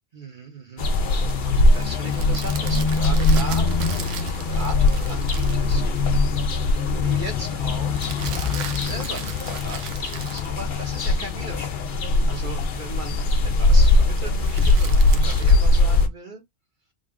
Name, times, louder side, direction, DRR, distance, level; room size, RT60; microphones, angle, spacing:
voice 1, 0.1-6.3 6.8-16.4, right 2 dB, 45° right, 0.9 m, -38 dB
sound 1, 0.8-16.1, left 2 dB, 50° left, 0.7 m, -21 dB
sound 2, 1.7-5.8 8.0-11.1 14.2-15.5, right 6 dB, 90° right, 1.0 m, -36 dB
3.6 x 2.2 x 3.5 m
omnidirectional pair, 1.2 m